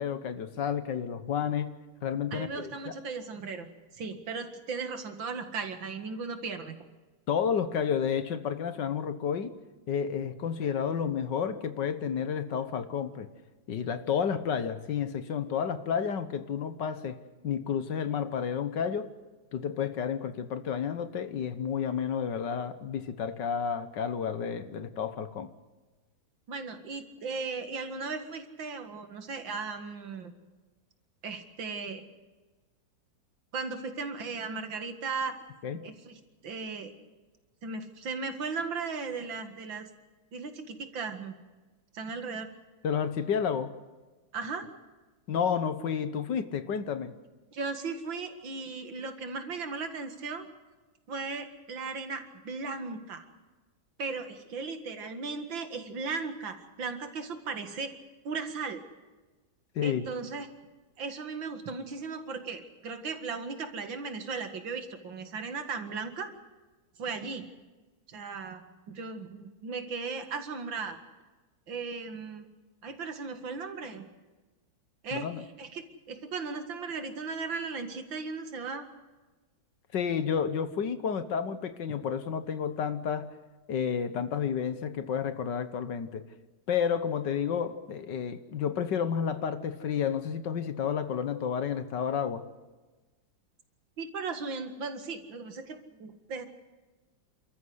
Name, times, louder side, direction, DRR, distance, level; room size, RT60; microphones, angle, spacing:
voice 1, 0.0-1.7 2.0-2.9 7.3-9.5 9.9-13.3 13.7-17.2 17.4-19.1 19.5-25.5 35.6-35.8 42.8-43.7 45.3-47.1 59.8-60.1 75.1-75.4 79.9-83.3 83.7-86.2 86.7-92.5, left 7 dB, 65° left, 12 dB, 1.7 m, -31 dB
voice 2, 2.3-3.7 3.9-6.8 26.5-30.3 31.2-32.0 33.5-35.4 35.8-36.9 37.6-39.9 40.3-41.3 41.9-42.5 44.3-44.7 47.5-50.5 51.1-53.3 54.0-57.9 58.2-58.8 59.8-60.5 61.0-66.3 67.0-67.5 68.1-68.6 68.9-71.0 71.7-72.4 72.8-74.0 75.0-78.9 94.0-96.5, right 4 dB, 70° right, 8 dB, 2.6 m, -37 dB
28.5 x 14.0 x 8.0 m, 1.3 s
omnidirectional pair, 2.2 m